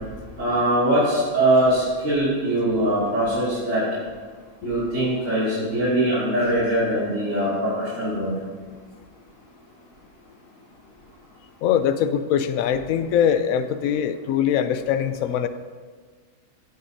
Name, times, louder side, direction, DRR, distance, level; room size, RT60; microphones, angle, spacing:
voice 1, 0.4-3.8 4.6-8.3, right 1 dB, 55° right, -11 dB, 2.9 m, -22 dB
voice 2, 11.6-15.5, left 9 dB, 75° left, 11 dB, 1.0 m, -22 dB
16.0 x 6.8 x 2.7 m, 1.5 s
omnidirectional pair, 1.5 m